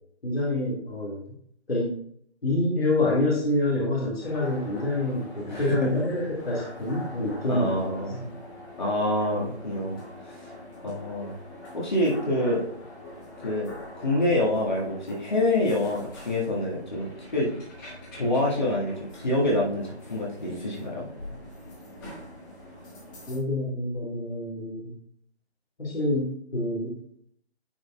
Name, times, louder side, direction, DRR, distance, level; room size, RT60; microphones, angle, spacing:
voice 1, 0.2-1.2 1.7-1.9 2.4-8.3 23.3-24.9 25.8-26.9, left 1 dB, 60° left, -4 dB, 1.9 m, -27 dB
sound 1, 4.2-23.4, left 1 dB, 20° left, 2.3 m, -44 dB
voice 2, 5.4-5.8 7.5-8.3 8.8-10.0 10.3-10.5 10.8-11.3 11.7-12.7 13.4-17.5 18.1-21.1, left 1 dB, 40° left, -5 dB, 1.8 m, -26 dB
10.0 x 5.0 x 2.3 m, 0.67 s
figure-of-eight pair, 160°, 34 cm